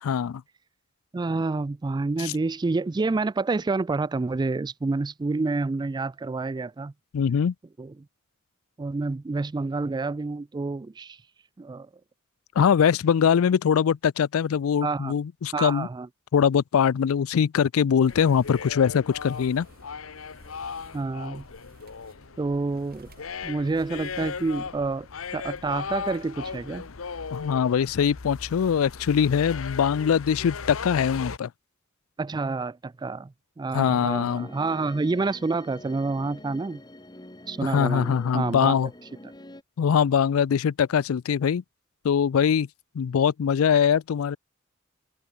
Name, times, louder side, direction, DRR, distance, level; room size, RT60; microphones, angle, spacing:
voice 1, 0.0-0.4 2.2-2.3 7.1-7.5 12.6-15.9 16.3-19.7 27.3-31.5 33.7-34.5 37.6-38.9 39.8-41.6 42.0-42.7 42.9-44.4, left 7 dB, 90° left, 0.4 m, -22 dB
voice 2, 1.1-6.9 7.8-7.9 8.8-11.2 11.6-11.9 14.8-15.1 15.5-16.1 20.9-21.4 22.4-23.1 23.4-25.1 25.3-26.9 32.2-36.8 37.5-38.8, right 3 dB, 20° right, 0.3 m, -28 dB
sound 1, 18.0-24.8, right 2 dB, 45° right, 4.0 m, -56 dB
sound 2, 18.1-31.4, left 5 dB, 75° left, 0.9 m, -38 dB
sound 3, 34.0-39.6, left 1 dB, 20° left, 2.6 m, -46 dB
head